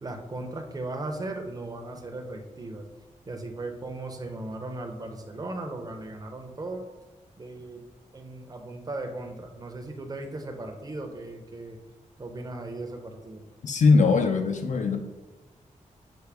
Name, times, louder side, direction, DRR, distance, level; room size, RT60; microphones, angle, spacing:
voice 1, 0.0-2.9 3.3-6.9 7.4-7.8 8.1-11.8 12.2-13.4, right 2 dB, 30° right, 3 dB, 0.6 m, -37 dB
voice 2, 13.6-15.0, left 4 dB, 65° left, 5 dB, 0.5 m, -21 dB
5.9 x 2.1 x 3.3 m, 1.2 s
wide cardioid pair, 100°, 13 cm